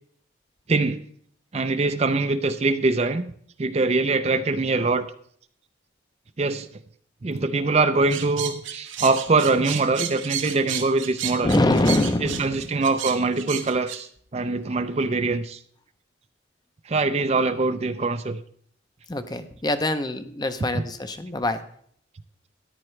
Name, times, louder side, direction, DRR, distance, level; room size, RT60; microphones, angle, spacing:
voice 1, 0.7-1.0 1.5-3.3 3.6-5.1 6.4-6.7 7.2-11.5 12.2-15.6 16.9-18.4, right 3 dB, 35° right, 10 dB, 0.5 m, -23 dB
sound 1, 8.1-14.0, right 10 dB, 90° right, 1.2 m, -32 dB
voice 2, 11.4-12.7 19.1-21.6, left 1 dB, 20° left, 9 dB, 0.6 m, -24 dB
13.5 x 11.0 x 3.2 m, 0.62 s
head